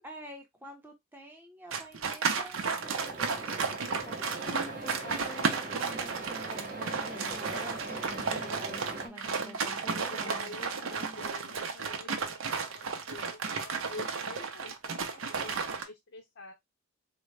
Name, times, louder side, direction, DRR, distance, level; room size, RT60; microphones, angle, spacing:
voice 1, 0.0-10.6, right 1 dB, 10° right, 0.7 m, -49 dB
sound 1, 1.7-15.8, right 5 dB, 75° right, 0.6 m, -33 dB
sound 2, 2.8-9.1, right 2 dB, 40° right, 0.8 m, -41 dB
sound 3, 3.9-11.3, left 2 dB, 20° left, 0.3 m, -48 dB
voice 2, 8.2-8.9 9.9-16.5, left 2 dB, 60° left, 0.6 m, -48 dB
3.8 x 2.0 x 3.1 m
head